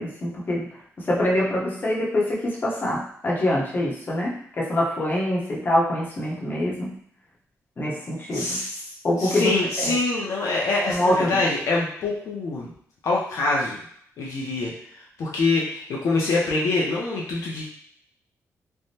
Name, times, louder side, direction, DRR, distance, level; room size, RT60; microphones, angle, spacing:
voice 1, 0.0-6.9 7.8-8.6 9.0-9.9 10.9-11.3, left 1 dB, 35° left, -4 dB, 0.9 m, -25 dB
voice 2, 8.3-8.8 9.2-12.7 13.0-13.8 14.2-17.6, left 3 dB, 70° left, -4 dB, 0.6 m, -25 dB
3.4 x 2.1 x 2.7 m, 0.64 s
cardioid pair, 95°, 6 cm